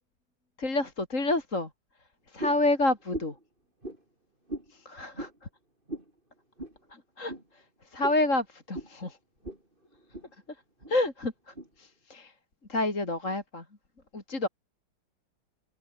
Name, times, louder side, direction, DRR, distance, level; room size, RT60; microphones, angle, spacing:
voice 1, 0.6-1.7 2.3-3.3 4.7-5.3 7.2-7.3 7.9-9.2 10.9-12.3 12.7-13.6 14.1-14.5, left 2 dB, 35° left, 3.9 m, -28 dB
sound 1, 2.4-2.7 3.1-3.4 3.8-4.0 4.5-4.7 5.1-5.4 5.9-6.1 6.6-6.8 7.3-7.4 8.0-8.2 8.7-8.9 9.4-9.6 9.9-10.3 10.8-10.9 11.6-11.7, right 1 dB, 20° right, 6.1 m, -38 dB
omnidirectional pair, 2.3 m